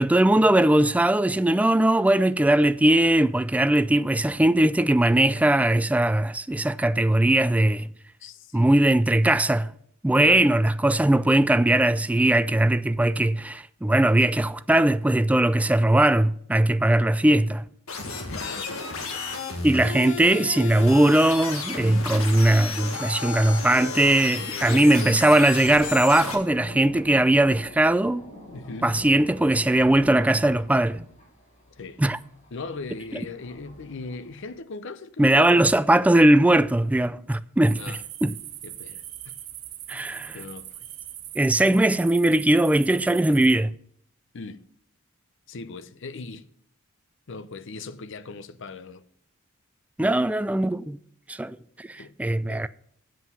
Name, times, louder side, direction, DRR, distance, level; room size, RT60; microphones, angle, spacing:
voice 1, 0.0-7.9 8.5-9.7 10.0-17.6 19.6-28.3 28.8-31.1 32.0-32.2 35.2-38.3 39.9-40.4 41.4-43.7 50.0-51.0 51.3-52.7, right 1 dB, 5° right, 0.3 m, -20 dB
voice 2, 8.2-8.7 10.2-10.6 17.2-17.5 18.3-19.4 24.3-25.2 28.5-29.0 31.8-32.0 32.5-35.6 37.7-38.0 38.6-39.3 39.9-40.9 44.3-44.7 45.5-46.5 47.3-49.0 52.0-52.1 52.4-52.7, left 3 dB, 65° left, 0.7 m, -39 dB
sound 1, 17.9-26.3, left 4 dB, 90° left, 1.8 m, -33 dB
Thunder, 25.1-34.5, equal, 40° left, 3.2 m, -46 dB
sound 2, 37.6-43.6, right 13 dB, 85° right, 1.0 m, -40 dB
8.2 x 7.6 x 7.0 m
head